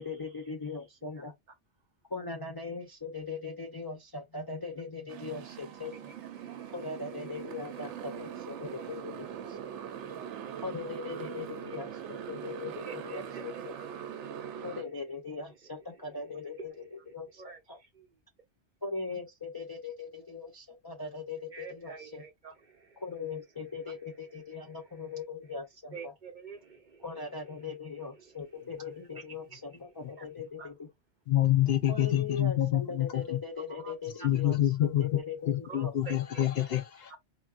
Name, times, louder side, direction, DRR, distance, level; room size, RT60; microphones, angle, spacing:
voice 1, 0.0-1.3 2.1-6.1 6.7-9.6 10.6-13.8 14.6-17.8 18.8-22.2 23.0-26.1 27.0-30.9 31.9-36.2, left 4 dB, 30° left, 0.4 m, -40 dB
Motorcycle, 5.1-14.8, right 9 dB, 80° right, 0.9 m, -41 dB
voice 2, 5.9-7.9 8.2-8.9 9.8-10.6 12.8-14.9 15.3-15.4 15.9-16.0 16.4-18.2 21.5-23.0 24.6-25.0 25.9-27.0 27.7-28.4 28.8-28.9 29.5-29.6 30.2-30.3 30.6-30.7 33.7-33.9 34.2-34.3 35.6-36.7, right 5 dB, 50° right, 0.7 m, -50 dB
voice 3, 31.3-33.4 34.2-35.1 35.5-37.1, left 13 dB, 65° left, 0.7 m, -27 dB
4.4 x 2.1 x 2.4 m
omnidirectional pair, 1.2 m